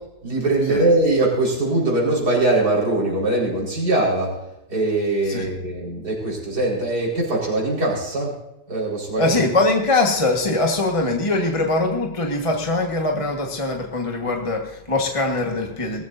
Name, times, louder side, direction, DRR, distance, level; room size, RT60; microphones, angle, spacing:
voice 1, 0.2-4.3 4.7-8.3 8.7-9.3, right 2 dB, 65° right, -4 dB, 5.2 m, -21 dB
voice 2, 9.2-16.0, left 2 dB, 20° left, 1 dB, 1.4 m, -22 dB
20.0 x 14.5 x 2.7 m, 0.93 s
omnidirectional pair, 1.8 m